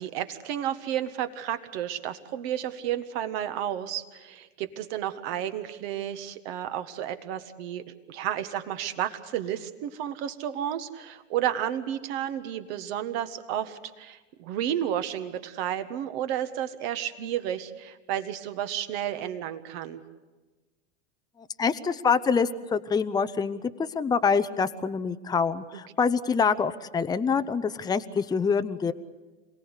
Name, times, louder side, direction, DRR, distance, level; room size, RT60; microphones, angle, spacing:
voice 1, 0.0-20.0, right 10 dB, 55° right, 10 dB, 1.7 m, -32 dB
voice 2, 21.6-28.9, left 5 dB, 10° left, 11 dB, 0.7 m, -26 dB
27.0 x 18.0 x 8.2 m, 1.2 s
hypercardioid pair, 100°, 37 cm